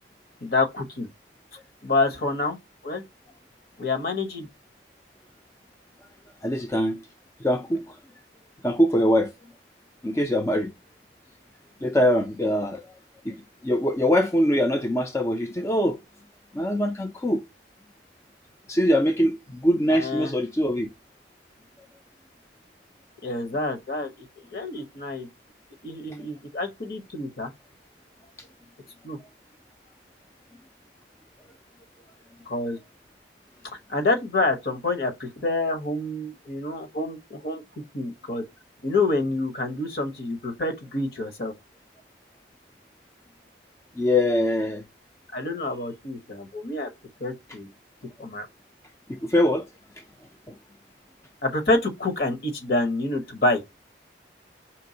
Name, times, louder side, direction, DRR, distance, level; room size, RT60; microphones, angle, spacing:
voice 1, 0.4-1.1 1.8-2.6 2.8-3.0 3.8-4.5 19.9-20.3 23.2-24.1 24.5-25.3 25.8-27.5 29.0-29.2 32.5-32.8 33.9-37.6 37.9-38.4 38.8-41.5 45.3-46.9 47.2-47.7 48.2-48.5 51.4-53.6, left 2 dB, 55° left, 1.0 m, -27 dB
voice 2, 6.4-7.0 7.4-8.0 8.6-9.3 10.0-10.7 11.8-12.8 13.3-13.4 13.6-16.0 16.5-17.4 18.7-20.9 44.0-44.8 49.1-49.6 50.5-50.6, equal, 15° left, 0.4 m, -23 dB
4.5 x 3.4 x 2.7 m
head